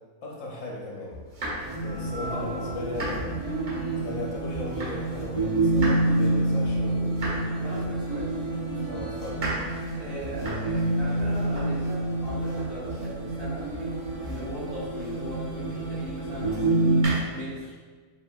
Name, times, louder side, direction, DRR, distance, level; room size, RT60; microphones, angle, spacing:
voice 1, 0.2-1.2 1.8-3.2 3.9-7.1 8.1-8.2 8.8-9.6, left 2 dB, 65° left, -3 dB, 1.0 m, -37 dB
sound 1, 1.1-5.3 5.5-15.5 16.5-17.6, right 1 dB, 85° right, 1.9 m, -38 dB
sound 2, 1.6-17.0, right 2 dB, 30° right, 0.8 m, -28 dB
voice 2, 2.1-2.8 7.6-8.3 10.0-13.6 14.2-16.8 17.3-17.7, right 1 dB, 60° right, -10 dB, 1.9 m, -38 dB
4.7 x 3.4 x 2.6 m, 1.4 s
omnidirectional pair, 1.6 m